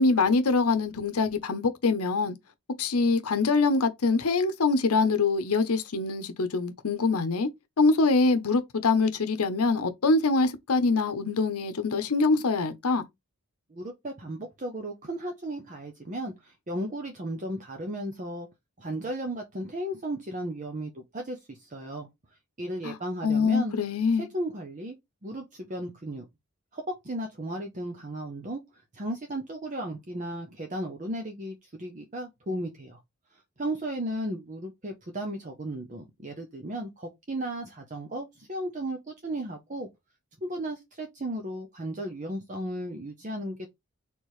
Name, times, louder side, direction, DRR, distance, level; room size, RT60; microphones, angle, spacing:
voice 1, 0.0-2.3 2.8-7.5 7.8-13.1 22.8-23.0 23.2-24.3, left 3 dB, 85° left, 0.8 m, -24 dB
voice 2, 13.7-18.5 18.8-22.1 22.6-23.7 24.1-25.0 25.2-26.3 26.7-33.0 33.3-39.9 40.4-43.7, right 1 dB, 35° right, 0.7 m, -35 dB
4.6 x 3.5 x 3.1 m
head